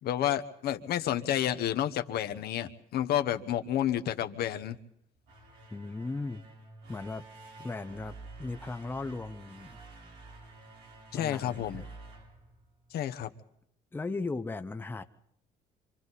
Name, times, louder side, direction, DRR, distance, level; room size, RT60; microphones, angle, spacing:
voice 1, 0.0-4.8 11.1-11.8 12.9-13.3, left 11 dB, 70° left, 9 dB, 1.1 m, -30 dB
sound 1, 5.1-13.1, right 3 dB, 85° right, 4.4 m, -50 dB
voice 2, 5.7-6.4 6.9-7.2 7.6-9.8 11.2-11.8 13.9-15.0, left 3 dB, 10° left, 8 dB, 0.7 m, -37 dB
26.5 x 25.5 x 4.1 m, 0.73 s
cardioid pair, 110°, 17 cm